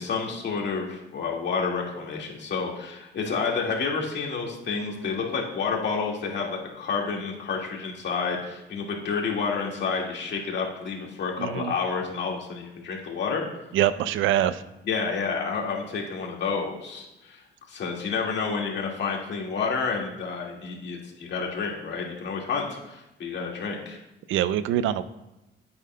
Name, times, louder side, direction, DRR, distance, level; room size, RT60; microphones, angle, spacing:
voice 1, 0.0-13.4 14.9-17.4 17.7-24.0, left 5 dB, 60° left, -1 dB, 1.9 m, -29 dB
voice 2, 11.4-11.7 13.7-14.6 24.3-25.0, right 11 dB, 80° right, 14 dB, 0.5 m, -24 dB
9.0 x 8.6 x 2.2 m, 0.96 s
cardioid pair, 90°, 20 cm